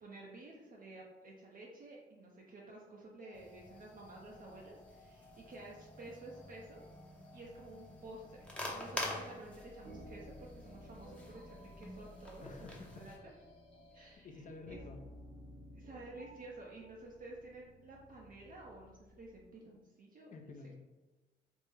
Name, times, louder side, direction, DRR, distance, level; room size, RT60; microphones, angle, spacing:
voice 1, 0.0-6.8 7.3-12.7 12.9-13.1 13.9-14.3 14.7-14.8 15.7-20.3, right 2 dB, 45° right, -3 dB, 0.5 m, -52 dB
sound 1, 3.2-14.2, left 2 dB, 65° left, 0.9 m, -61 dB
sound 2, 3.3-13.2, left 1 dB, 5° left, 0.7 m, -47 dB
sound 3, 9.8-19.4, equal, 80° right, 1.3 m, -56 dB
voice 2, 12.4-13.1 13.9-15.0 20.3-20.8, left 3 dB, 40° left, 4 dB, 0.5 m, -51 dB
3.5 x 2.1 x 3.2 m, 1.1 s
cardioid pair, 80°, 19 cm